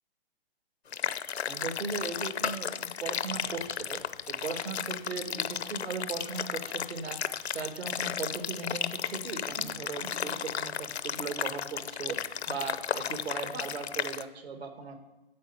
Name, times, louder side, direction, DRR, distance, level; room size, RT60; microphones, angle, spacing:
sound 1, 0.9-14.2, left 8 dB, 85° left, 0.8 m, -34 dB
voice 1, 1.5-4.0 4.3-12.2 12.5-14.9, right 4 dB, 80° right, 6 dB, 2.4 m, -38 dB
10.5 x 7.3 x 8.5 m, 1.0 s
hypercardioid pair, 145°, 32 cm